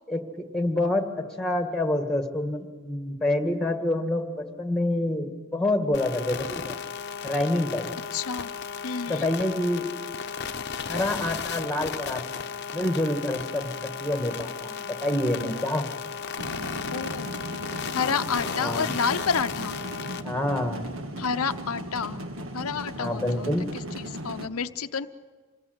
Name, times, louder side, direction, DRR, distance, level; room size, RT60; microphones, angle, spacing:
voice 1, 0.1-6.8 7.2-7.9 9.1-9.9 10.9-12.5 12.7-13.7 14.0-15.9 18.6-18.9 20.2-20.9 23.0-23.7, left 1 dB, 5° left, 4 dB, 2.0 m, -27 dB
sound 1, 5.9-20.2, left 6 dB, 50° left, 0.8 m, -35 dB
voice 2, 8.1-8.5 8.8-9.3 16.9-17.3 17.9-19.8 21.2-22.2 22.5-23.5 24.0-25.1, left 6 dB, 90° left, 8 dB, 0.8 m, -29 dB
sound 2, 16.4-24.5, right 1 dB, 70° right, 1.5 m, -37 dB
27.5 x 20.5 x 8.1 m, 1.4 s
head